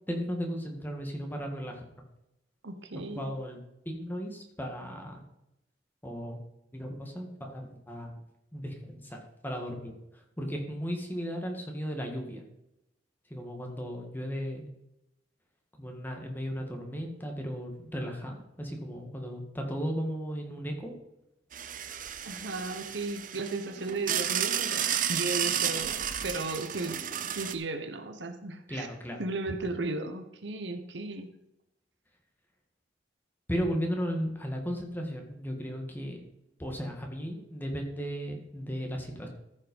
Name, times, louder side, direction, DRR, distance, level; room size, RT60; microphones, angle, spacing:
voice 1, 0.1-1.8 3.0-3.6 3.9-5.2 6.0-6.4 6.7-8.1 8.5-12.4 13.3-14.7 15.8-20.9 28.7-29.2 33.5-36.2 36.6-39.3, equal, 10° left, 2 dB, 1.8 m, -35 dB
voice 2, 2.6-3.3 22.2-28.9 29.2-31.3, right 3 dB, 70° right, 7 dB, 1.1 m, -35 dB
sound 1, 21.5-27.5, right 9 dB, 45° right, 0.7 m, -32 dB
14.0 x 5.6 x 5.4 m, 0.86 s
head